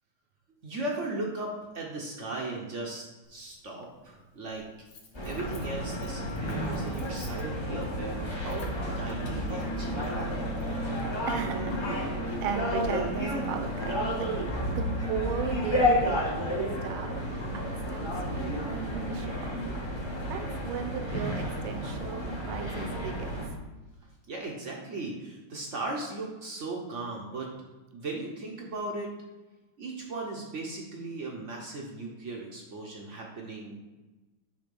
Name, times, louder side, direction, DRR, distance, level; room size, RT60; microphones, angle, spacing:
voice 1, 0.5-4.6 5.2-10.5 24.0-27.5 27.9-29.1 29.8-33.8, right 2 dB, 60° right, -1 dB, 0.8 m, -37 dB
Motor vehicle (road), 3.2-3.3 4.5-15.6, left 1 dB, 80° left, 1.9 m, -42 dB
sound 1, 5.1-23.5, equal, 30° left, 0.5 m, -31 dB
voice 2, 11.3-14.3 14.7-16.2 16.5-18.1 18.6-19.6 20.3-23.4, right 6 dB, 75° right, 5 dB, 1.5 m, -36 dB
6.9 x 3.7 x 5.3 m, 1.1 s
omnidirectional pair, 2.4 m